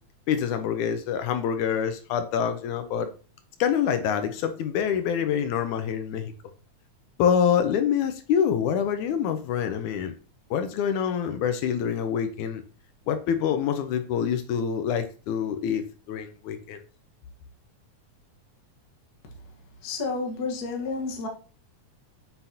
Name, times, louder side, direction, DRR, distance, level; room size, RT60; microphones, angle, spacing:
voice 1, 0.3-3.1 3.6-6.3 7.2-10.1 10.5-12.6 13.1-15.8 16.1-16.8, left 8 dB, 80° left, 2.2 m, -26 dB
voice 2, 19.8-21.3, left 4 dB, 45° left, 1.2 m, -30 dB
7.8 x 5.8 x 2.8 m
omnidirectional pair, 3.6 m